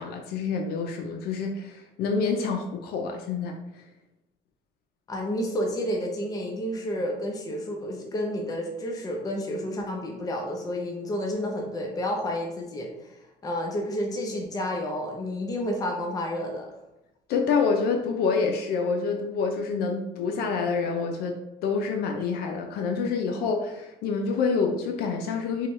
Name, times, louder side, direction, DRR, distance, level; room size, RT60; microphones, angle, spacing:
voice 1, 0.0-3.8 17.3-21.4 21.6-25.7, left 5 dB, 80° left, 4 dB, 0.4 m, -27 dB
voice 2, 5.1-16.7, equal, 25° left, 1 dB, 0.6 m, -30 dB
4.6 x 2.2 x 3.0 m, 0.92 s
cardioid pair, 110°, 16 cm